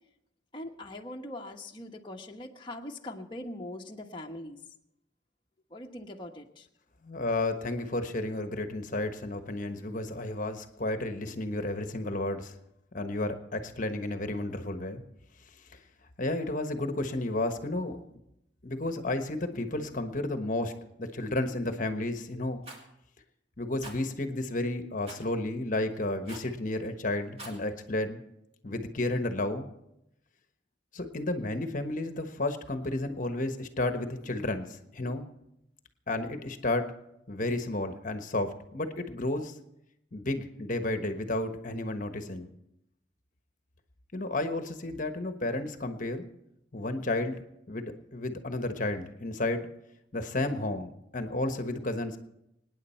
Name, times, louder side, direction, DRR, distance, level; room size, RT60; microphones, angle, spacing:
voice 1, 0.5-4.6 5.7-6.7, left 1 dB, 25° left, 1 dB, 1.2 m, -41 dB
voice 2, 7.0-12.6 12.9-15.0 16.2-18.0 18.6-22.6 23.6-28.2 28.6-29.7 30.9-35.3 36.1-36.9 37.3-39.5 40.1-42.5 44.1-46.2 46.7-47.4 47.7-49.7 50.1-52.2, left 2 dB, 45° left, 7 dB, 1.2 m, -32 dB
Rattle, 22.6-22.9 23.8-24.0 25.1-25.3 26.3-26.5 27.2-27.6, right 1 dB, 35° right, 2.7 m, -44 dB
26.0 x 9.7 x 4.4 m, 0.83 s
head